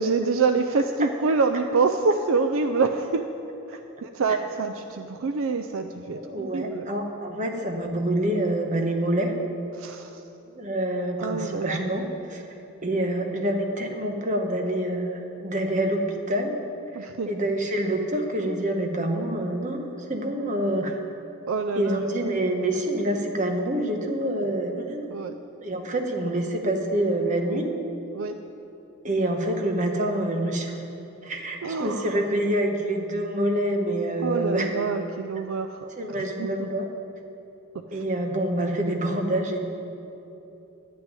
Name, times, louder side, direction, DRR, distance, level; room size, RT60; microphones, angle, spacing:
voice 1, 0.0-3.3 3.7-6.9 9.7-10.2 11.2-11.8 17.0-17.3 21.5-22.0 25.1-25.3 28.1-28.4 31.6-32.2 34.2-35.9 36.4-36.5, right 4 dB, 65° right, 8 dB, 0.4 m, -26 dB
voice 2, 6.1-9.3 10.5-12.5 12.8-16.6 16.9-21.0 21.8-25.1 25.6-27.7 29.0-30.8 31.2-34.7 36.0-36.8 37.9-39.6, right 1 dB, 35° right, 3 dB, 1.1 m, -26 dB
11.0 x 6.2 x 9.0 m, 2.9 s
head